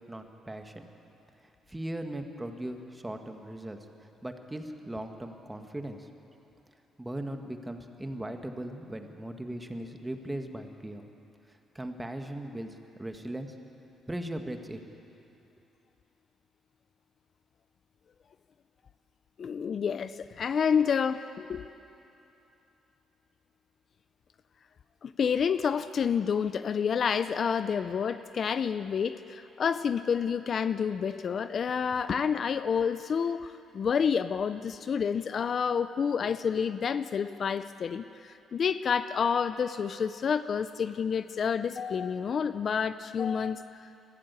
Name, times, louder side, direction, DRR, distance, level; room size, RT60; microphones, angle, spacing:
voice 1, 0.1-0.8 1.7-3.8 4.2-6.1 7.0-11.0 11.7-13.5 14.1-14.8, right 1 dB, 10° right, 5 dB, 1.7 m, -38 dB
voice 2, 19.4-21.6 25.0-44.0, left 6 dB, 50° left, 12 dB, 0.5 m, -29 dB
21.5 x 15.0 x 8.3 m, 2.9 s
cardioid pair, 90°, 0 cm